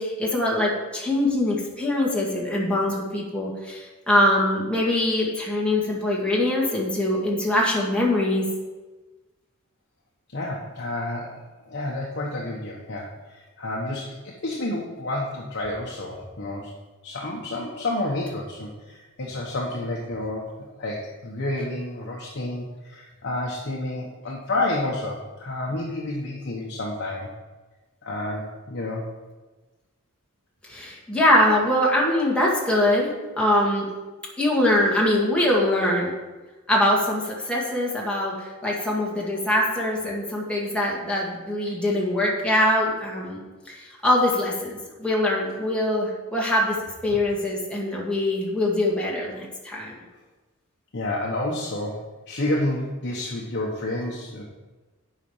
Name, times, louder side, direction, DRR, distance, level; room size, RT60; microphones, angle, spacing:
voice 1, 0.0-8.5 30.7-33.1 33.4-33.9 34.4-36.1 36.7-43.4 44.0-44.7 45.0-46.8 47.0-49.9, left 1 dB, 5° left, -4 dB, 2.1 m, -23 dB
voice 2, 10.3-16.7 17.0-27.3 28.0-29.1 50.9-54.4, left 1 dB, 55° left, -3 dB, 1.1 m, -30 dB
8.2 x 5.1 x 7.2 m, 1.2 s
head